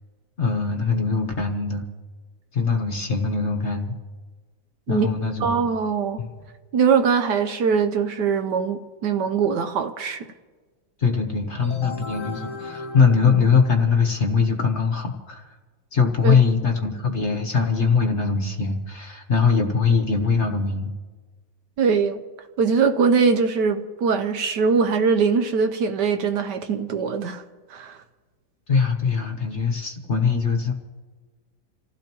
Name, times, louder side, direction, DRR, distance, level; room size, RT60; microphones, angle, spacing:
voice 1, 0.4-1.9 2.5-3.9 4.9-5.7 6.2-6.3 11.0-15.6 15.9-20.9 28.7-30.7, left 5 dB, 45° left, 1.1 m, -22 dB
voice 2, 5.4-6.2 6.7-10.3 16.2-16.4 21.8-22.2 22.6-27.4 27.7-28.0, right 5 dB, 70° right, 1.2 m, -22 dB
sound 1, 11.6-14.3, left 3 dB, 15° left, 1.2 m, -36 dB
28.0 x 15.5 x 3.0 m
omnidirectional pair, 2.1 m